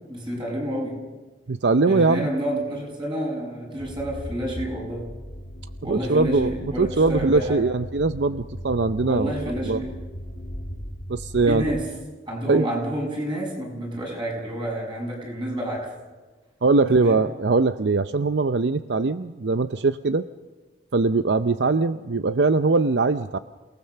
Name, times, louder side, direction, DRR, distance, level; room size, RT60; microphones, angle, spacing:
voice 1, 0.1-1.0 1.9-5.1 5.8-7.6 9.0-9.9 11.4-11.9 12.3-15.9 16.8-17.2, equal, 25° right, -1 dB, 6.8 m, -29 dB
voice 2, 1.5-2.3 5.9-9.3 9.6-9.8 11.1-11.6 12.5-12.6 16.6-20.3 20.9-23.4, right 3 dB, 70° right, 12 dB, 0.6 m, -21 dB
sound 1, 3.8-11.8, equal, 50° left, 1.9 m, -37 dB
28.5 x 18.5 x 6.7 m, 1.3 s
head